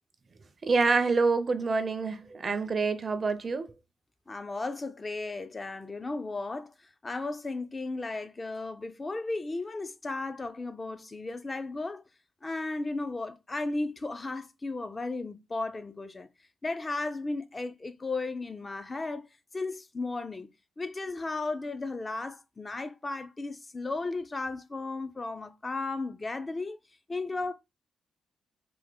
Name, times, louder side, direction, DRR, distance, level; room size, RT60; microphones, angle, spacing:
voice 1, 0.6-3.7, right 4 dB, 40° right, 0.4 m, -27 dB
voice 2, 4.3-6.7 7.0-12.0 12.4-16.3 16.6-19.2 19.5-20.5 20.8-26.8 27.1-27.5, left 3 dB, 25° left, 0.3 m, -35 dB
3.4 x 2.0 x 3.3 m
cardioid pair, 110°, 0 cm